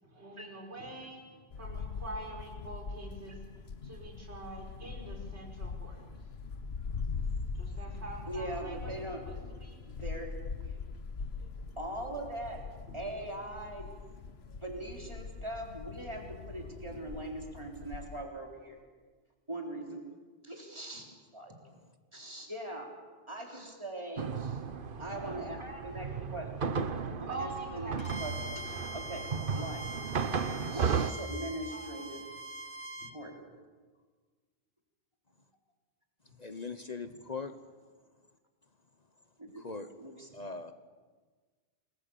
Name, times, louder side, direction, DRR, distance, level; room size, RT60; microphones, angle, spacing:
voice 1, 0.0-6.0 7.6-9.8 12.9-13.0 16.0-16.1 16.9-17.0 27.3-28.5 29.5-29.6 31.7-31.9 33.0-33.1, right 2 dB, 85° right, 0 dB, 5.4 m, -45 dB
sound 1, 1.5-18.2, left 4 dB, 70° left, 1.4 m, -41 dB
voice 2, 8.3-9.2 10.0-10.3 10.6-10.8 11.8-12.6 12.9-13.9 14.6-18.8 19.5-20.0 20.4-21.1 21.3-21.5 22.1-22.9 23.3-24.6 25.0-26.8 27.2-29.3 29.5-29.9 30.7-32.2 33.1-33.4 39.4-39.6 40.0-40.3, right 1 dB, 25° right, 1 dB, 3.7 m, -41 dB
sound 2, 24.2-31.1, right 6 dB, 55° right, 1.1 m, -35 dB
Bowed string instrument, 28.0-33.2, right 1 dB, 25° left, 1.7 m, -43 dB
voice 3, 36.4-37.5 39.6-39.9 40.3-40.7, left 4 dB, 40° left, 9 dB, 1.1 m, -40 dB
28.0 x 21.0 x 7.0 m, 1.4 s
omnidirectional pair, 1.1 m